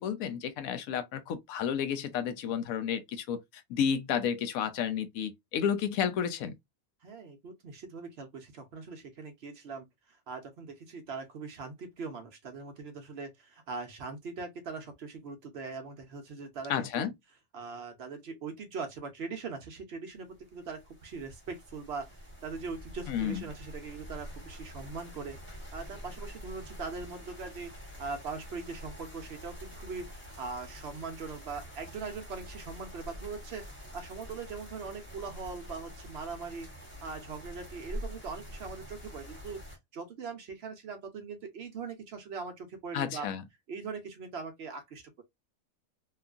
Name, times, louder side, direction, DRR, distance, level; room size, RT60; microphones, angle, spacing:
voice 1, 0.0-6.6 16.7-17.1 23.1-23.5 42.9-43.4, left 8 dB, 85° left, 1.0 m, -31 dB
voice 2, 7.0-17.1 17.5-27.7 28.0-36.7 37.0-39.6 39.9-43.3 43.7-45.2, right 4 dB, 60° right, 0.8 m, -41 dB
sound 1, 20.3-39.8, equal, 10° left, 0.9 m, -46 dB
2.9 x 2.4 x 2.3 m
omnidirectional pair, 1.4 m